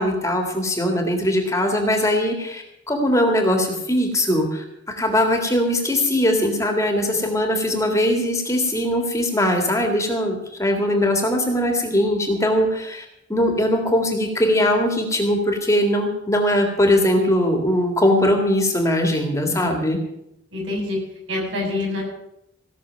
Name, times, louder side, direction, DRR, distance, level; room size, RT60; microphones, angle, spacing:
voice 1, 0.0-4.6 5.0-20.0, left 1 dB, 15° left, 3 dB, 1.9 m, -20 dB
voice 2, 20.5-21.0 21.3-22.0, left 2 dB, 75° right, -2 dB, 7.4 m, -26 dB
17.0 x 6.6 x 9.0 m, 0.82 s
head